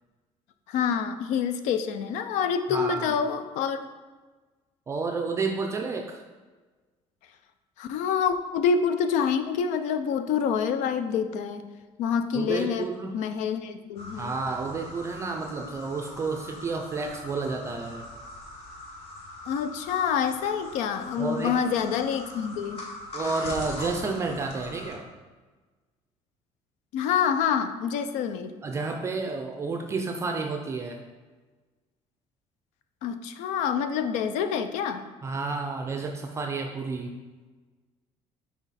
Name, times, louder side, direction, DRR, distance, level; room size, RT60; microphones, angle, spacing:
voice 1, 0.7-3.9 7.8-11.7 12.0-12.9 13.1-14.3 19.5-22.8 26.9-28.5 33.0-35.1, left 7 dB, 90° left, 10 dB, 0.5 m, -27 dB
voice 2, 2.7-3.2 4.9-6.2 12.3-13.2 14.1-18.1 21.2-21.6 23.1-25.1 28.6-31.0 35.2-37.1, right 4 dB, 25° right, 3 dB, 0.4 m, -31 dB
sound 1, 14.0-24.9, left 2 dB, 55° left, 1.2 m, -41 dB
6.0 x 4.3 x 4.1 m, 1.3 s
cardioid pair, 160°, 12 cm